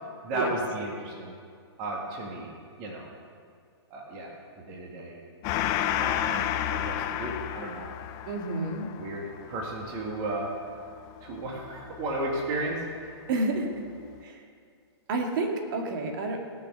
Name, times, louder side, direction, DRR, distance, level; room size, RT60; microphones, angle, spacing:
voice 1, 0.2-1.3 1.8-2.5 2.8-3.1 3.9-4.3 4.6-5.2 5.6-5.7 6.0-7.9 8.9-10.5 11.2-12.8, right 1 dB, 30° right, -1 dB, 2.1 m, -34 dB
Gong, 5.4-12.4, left 11 dB, 25° left, 0.5 m, -32 dB
voice 2, 8.3-8.9 13.3-13.9 14.2-14.4 15.1-16.4, right 2 dB, 50° right, 2 dB, 2.0 m, -29 dB
17.5 x 6.9 x 6.2 m, 2.2 s
hypercardioid pair, 150°, 14 cm